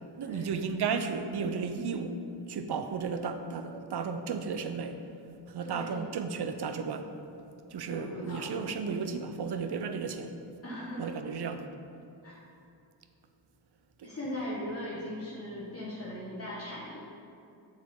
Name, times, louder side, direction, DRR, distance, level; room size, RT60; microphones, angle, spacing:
voice 1, 0.2-2.2 2.5-5.0 5.5-7.1 7.7-10.3 11.0-11.7 14.0-14.1, right 5 dB, 60° right, 8 dB, 0.6 m, -34 dB
voice 2, 5.6-6.0 7.9-8.6 10.6-11.2 12.2-12.4 14.0-17.0, left 1 dB, 30° left, -7 dB, 1.3 m, -39 dB
7.1 x 5.5 x 3.7 m, 2.6 s
cardioid pair, 55°, 46 cm